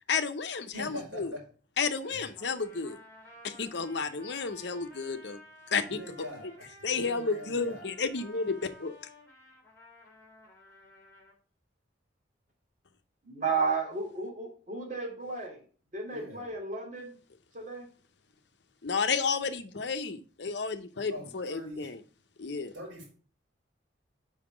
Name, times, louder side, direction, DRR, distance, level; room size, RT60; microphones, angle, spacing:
voice 1, 0.1-1.4 1.8-3.0 3.4-5.4 5.7-6.5 6.8-9.0 18.8-22.0 22.4-22.7, left 5 dB, 65° left, 0.8 m, -32 dB
voice 2, 0.7-1.4 2.1-2.3 5.9-6.5 6.9-7.9 16.1-16.5 21.1-21.9 22.7-23.0, left 1 dB, 85° right, 3.8 m, -42 dB
Trumpet, 2.3-11.3, left 1 dB, 15° left, 3.2 m, -54 dB
voice 3, 13.2-15.6 15.9-17.1 17.5-17.9, right 4 dB, 40° right, 2.5 m, -33 dB
5.7 x 5.4 x 4.9 m
head